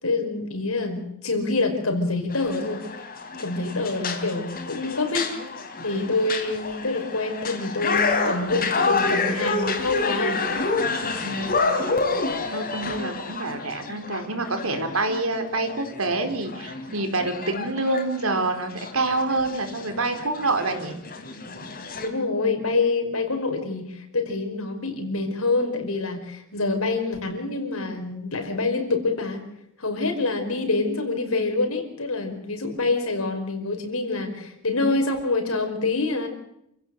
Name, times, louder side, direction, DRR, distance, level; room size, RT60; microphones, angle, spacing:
voice 1, 0.0-2.8 3.4-5.3 5.8-10.4 22.0-29.5 29.8-36.3, left 3 dB, 85° left, 5 dB, 5.3 m, -26 dB
sound 1, 2.3-22.1, left 3 dB, 45° left, 3.7 m, -29 dB
voice 2, 11.2-12.1 12.5-20.9, right 2 dB, 85° right, 6 dB, 4.1 m, -27 dB
28.5 x 16.0 x 8.0 m, 0.77 s
head